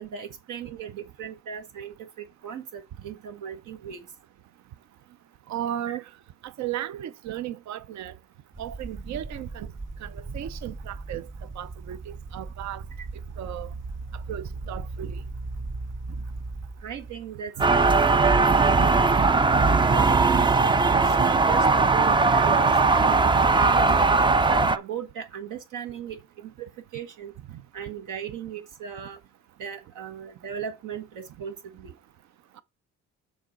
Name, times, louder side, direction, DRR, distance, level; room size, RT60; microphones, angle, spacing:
voice 1, 0.0-4.1 13.0-13.1 16.8-18.5 19.3-23.3 23.6-24.1 24.4-27.3 27.7-29.2 29.6-31.9, right 7 dB, 85° right, 1.5 m, -37 dB
voice 2, 5.5-6.0 6.4-8.1 8.6-9.7 10.0-11.3 11.6-12.8 13.4-13.7 14.1-15.2 17.6-17.7 18.4-18.5 27.5-27.6, right 11 dB, 65° right, 0.6 m, -35 dB
sound 1, 8.5-17.3 18.0-18.4 19.0-19.1 22.7-23.3, right 3 dB, 40° right, 1.5 m, -38 dB
sound 2, 17.6-24.8, right 4 dB, 15° right, 0.4 m, -19 dB
7.1 x 3.9 x 5.2 m
cardioid pair, 90°, 30 cm